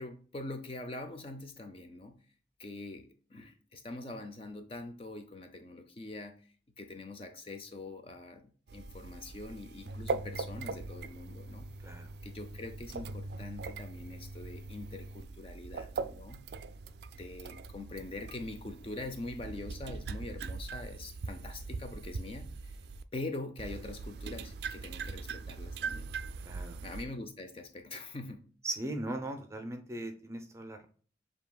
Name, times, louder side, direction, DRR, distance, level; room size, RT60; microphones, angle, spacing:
voice 1, 0.0-2.2 2.6-6.4 6.8-11.7 12.2-16.4 17.1-22.7 23.1-26.1 26.8-28.4, left 2 dB, 30° left, 6 dB, 0.5 m, -43 dB
sound 1, 8.7-23.0 23.6-27.0, right 4 dB, 65° right, 0.3 m, -41 dB
voice 2, 11.8-12.1 26.4-26.8 28.6-30.9, right 1 dB, 15° right, 6 dB, 0.6 m, -39 dB
7.2 x 2.9 x 2.2 m, 0.43 s
head